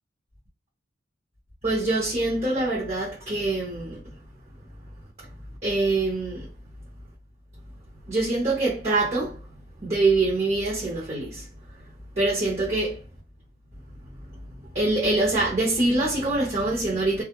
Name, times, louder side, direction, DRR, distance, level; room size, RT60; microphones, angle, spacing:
voice 1, 1.6-4.1 5.6-6.5 8.1-9.4 9.8-11.5 12.2-13.0 14.7-17.2, right 2 dB, 35° right, 0.9 m, -24 dB
2.4 x 2.0 x 2.9 m
head